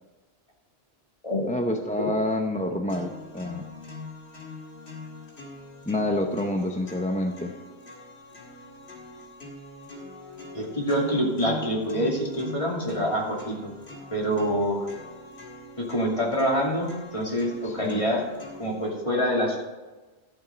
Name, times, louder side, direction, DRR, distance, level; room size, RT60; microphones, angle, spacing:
voice 1, 1.5-3.7 5.9-7.5 17.6-18.0, left 1 dB, 10° left, 3 dB, 0.6 m, -28 dB
sound 1, 2.9-18.9, left 3 dB, 80° left, 2.3 m, -43 dB
voice 2, 10.5-13.7 14.1-14.9 15.8-18.2 18.6-19.6, equal, 30° left, -2 dB, 2.6 m, -26 dB
13.0 x 7.3 x 5.2 m, 1.2 s
omnidirectional pair, 1.1 m